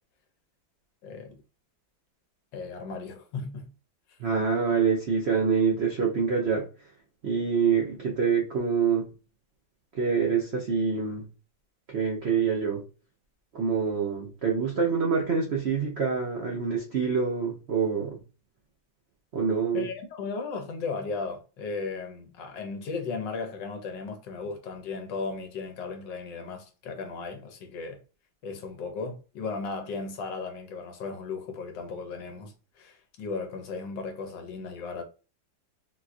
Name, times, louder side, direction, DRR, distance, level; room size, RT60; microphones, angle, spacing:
voice 1, 1.0-1.4 2.5-3.7 4.1-4.2 19.7-28.0 28.4-35.0, left 4 dB, 70° left, 1.4 m, -36 dB
voice 2, 4.2-6.7 7.2-9.1 9.9-11.3 11.9-12.8 13.5-18.2 19.3-19.9, right 6 dB, 75° right, 0.6 m, -26 dB
4.3 x 2.3 x 2.5 m
omnidirectional pair, 2.1 m